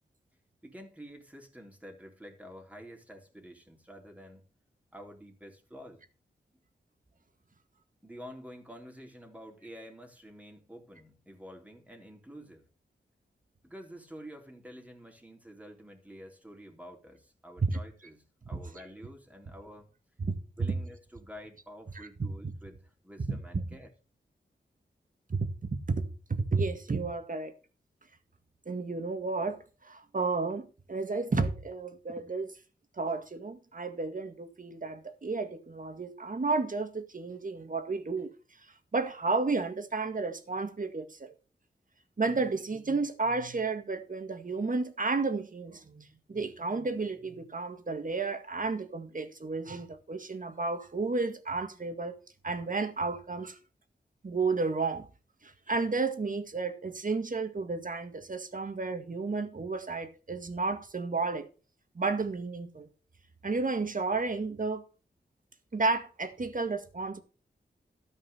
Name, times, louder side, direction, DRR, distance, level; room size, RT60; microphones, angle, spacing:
voice 1, 0.6-4.5 4.9-6.0 6.5-6.6 8.0-12.7 13.6-19.9 20.6-23.9, equal, 10° right, 3.5 m, -49 dB
voice 2, 22.0-22.5 23.3-23.4 25.3-26.0 26.3-27.5 28.7-32.5 33.0-38.3 38.6-41.3 42.2-52.2 52.4-53.6 54.2-55.1 55.4-61.5 62.0-62.9 63.4-64.8 65.7-67.2, right 3 dB, 45° right, 1.9 m, -32 dB
13.5 x 5.4 x 6.8 m
wide cardioid pair, 70°, 18 cm